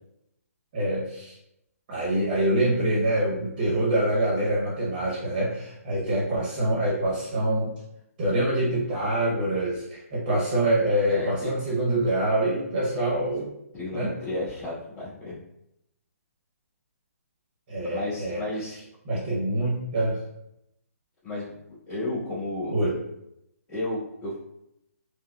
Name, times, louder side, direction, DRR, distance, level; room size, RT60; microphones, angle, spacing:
voice 1, 0.7-1.4 1.9-7.7 8.2-13.5 13.9-14.1 17.7-18.4 19.1-20.2 22.7-23.0, right 1 dB, 30° right, -5 dB, 0.9 m, -25 dB
voice 2, 11.1-11.6 13.7-15.4 17.9-18.7 21.2-22.8 23.7-24.4, left 1 dB, 20° left, -15 dB, 1.4 m, -33 dB
4.8 x 2.2 x 2.3 m, 0.83 s
hypercardioid pair, 160°, 8 cm